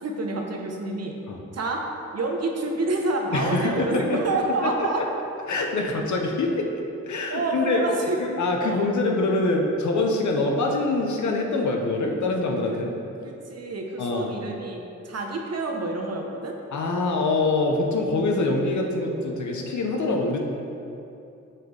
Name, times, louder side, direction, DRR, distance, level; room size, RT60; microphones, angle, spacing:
voice 1, 0.0-1.1 1.5-1.8 2.1-5.0 7.3-8.3 8.6-8.9 13.2-16.6, right 2 dB, 55° right, 1 dB, 1.1 m, -28 dB
voice 2, 3.3-4.2 4.6-4.9 5.5-6.7 7.0-7.8 8.2-12.9 14.0-14.3 16.7-20.4, left 2 dB, 70° left, 1 dB, 1.0 m, -24 dB
12.0 x 4.2 x 3.4 m, 2.7 s
cardioid pair, 65°, 30 cm